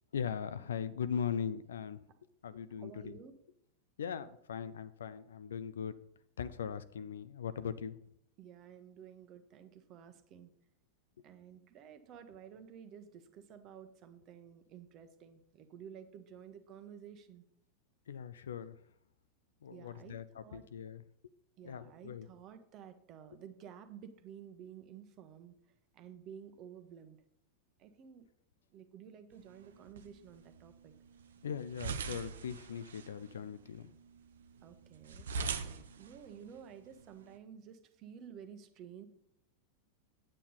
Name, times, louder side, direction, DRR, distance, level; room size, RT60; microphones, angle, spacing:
voice 1, 0.1-2.0 2.4-3.2 4.0-6.0 6.4-8.0 18.1-18.7 19.6-21.0 21.6-22.3 31.4-33.9, left 7 dB, 65° left, 14 dB, 0.5 m, -39 dB
voice 2, 2.8-3.3 8.4-10.5 11.2-17.4 19.7-20.6 21.6-25.5 25.9-27.2 27.8-28.2 28.7-30.9 34.6-35.3 35.6-39.1, right 8 dB, 35° right, 9 dB, 1.0 m, -52 dB
sound 1, 29.3-37.4, right 5 dB, 65° right, 0.7 m, -44 dB
8.9 x 8.4 x 3.9 m, 0.76 s
figure-of-eight pair, 90°, 0 cm